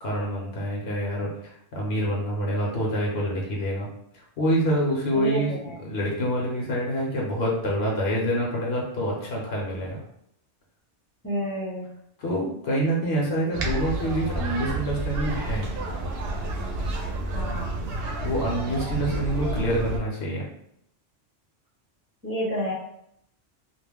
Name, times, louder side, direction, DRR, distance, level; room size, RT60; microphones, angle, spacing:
voice 1, 0.0-3.9 4.1-10.0 12.2-15.7 18.2-20.5, equal, 65° left, -3 dB, 0.9 m, -27 dB
voice 2, 5.1-5.8 11.2-12.0 17.3-17.9 22.2-22.7, equal, 20° right, -8 dB, 0.9 m, -30 dB
sound 1, 13.5-20.0, right 2 dB, 60° right, 0.7 m, -30 dB
2.3 x 2.1 x 3.4 m, 0.73 s
omnidirectional pair, 1.2 m